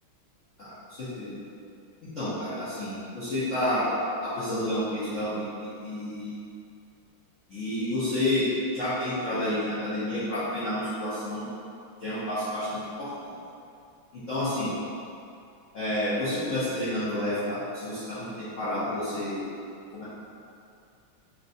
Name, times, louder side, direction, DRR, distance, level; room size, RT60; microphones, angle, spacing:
voice 1, 0.6-1.4 2.1-4.0 4.2-6.3 7.5-11.4 12.0-13.3 14.1-14.7 15.7-19.4 19.9-20.0, left 1 dB, 75° left, -14 dB, 0.7 m, -30 dB
3.1 x 2.9 x 2.6 m, 2.5 s
omnidirectional pair, 2.3 m